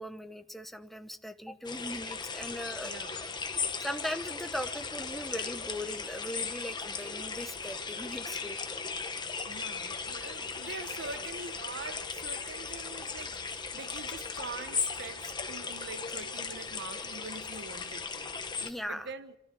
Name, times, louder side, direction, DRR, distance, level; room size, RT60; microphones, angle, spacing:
voice 1, 0.0-2.9 3.8-8.9 18.6-19.1, equal, ahead, 0.9 m, -39 dB
sound 1, 1.6-18.7, left 5 dB, 20° left, 1.3 m, -37 dB
voice 2, 2.8-3.2 9.4-18.3 18.9-19.4, right 4 dB, 60° right, 1.1 m, -44 dB
26.5 x 13.0 x 8.4 m
head